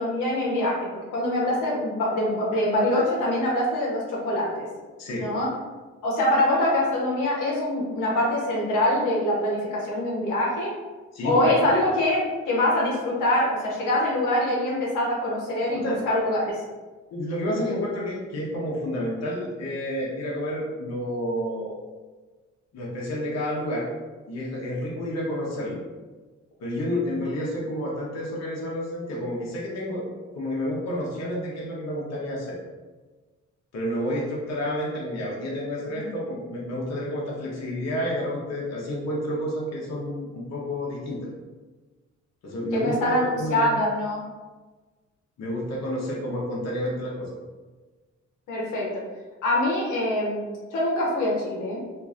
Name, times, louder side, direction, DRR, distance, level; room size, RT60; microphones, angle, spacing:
voice 1, 0.0-4.7 5.2-5.5 6.0-10.7 11.2-16.6 35.9-36.1 42.7-44.2 48.5-48.9 49.4-51.8, left 1 dB, 85° left, -4 dB, 0.9 m, -24 dB
voice 2, 5.0-5.3 11.1-11.6 15.7-16.0 17.1-21.8 22.7-23.9 24.3-25.8 26.6-30.0 30.3-32.6 33.7-41.3 42.4-43.8 45.4-47.3, equal, 60° left, -4 dB, 0.8 m, -30 dB
3.0 x 2.5 x 2.4 m, 1.3 s
cardioid pair, 90°, 30 cm